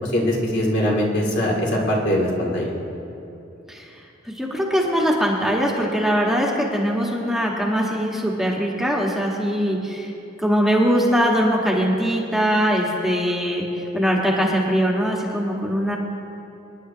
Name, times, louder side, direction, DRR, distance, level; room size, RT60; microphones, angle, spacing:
voice 1, 0.0-2.7, equal, 60° left, -4 dB, 2.5 m, -22 dB
voice 2, 3.7-10.1 10.4-16.0, equal, ahead, -3 dB, 1.4 m, -21 dB
27.0 x 10.0 x 2.8 m, 2.9 s
head